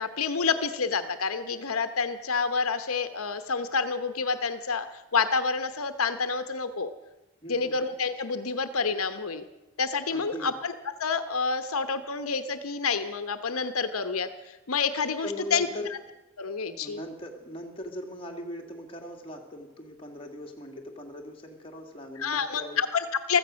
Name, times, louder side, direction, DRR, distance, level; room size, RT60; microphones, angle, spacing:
voice 1, 0.0-6.9 7.5-9.4 9.8-10.7 11.0-15.7 16.4-17.0 22.2-23.4, left 5 dB, 85° left, 10 dB, 1.0 m, -28 dB
voice 2, 7.4-7.8 10.1-10.5 15.2-15.9 16.8-22.8, left 1 dB, 25° left, 2 dB, 2.2 m, -40 dB
15.5 x 14.0 x 6.3 m, 0.94 s
head